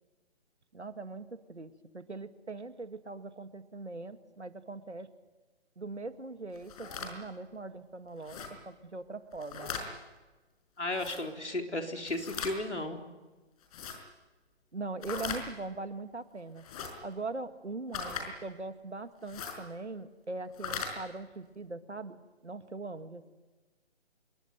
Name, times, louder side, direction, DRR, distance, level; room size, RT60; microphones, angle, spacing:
voice 1, 0.7-5.1 5.8-8.4 8.7-9.7 14.7-16.7 17.0-23.3, right 3 dB, 85° right, 9 dB, 2.3 m, -41 dB
sound 1, 6.6-7.1 8.2-8.5 9.3-9.9 10.9-11.2 12.1-12.6 13.6-14.0 15.0-15.4 16.6-16.9 17.9-18.3 19.2-19.6 20.5-20.9, left 6 dB, 35° left, 5.2 m, -39 dB
voice 2, 10.8-13.0, left 2 dB, 85° left, 3 dB, 4.3 m, -34 dB
26.5 x 22.0 x 9.6 m, 1.2 s
figure-of-eight pair, 140°, 34 cm